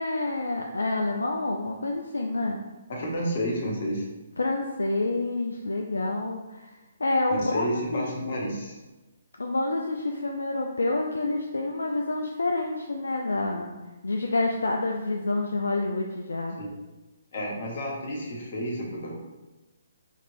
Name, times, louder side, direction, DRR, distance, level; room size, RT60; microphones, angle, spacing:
voice 1, 0.0-2.6 4.4-6.7 7.0-8.5 9.4-13.7 14.0-16.6, left 2 dB, 80° left, 2 dB, 0.4 m, -28 dB
voice 2, 2.9-4.1 7.4-8.8 16.6-16.7 17.3-19.2, equal, 50° left, -2 dB, 1.2 m, -31 dB
5.1 x 3.0 x 2.6 m, 1.1 s
figure-of-eight pair, 135°, 0 cm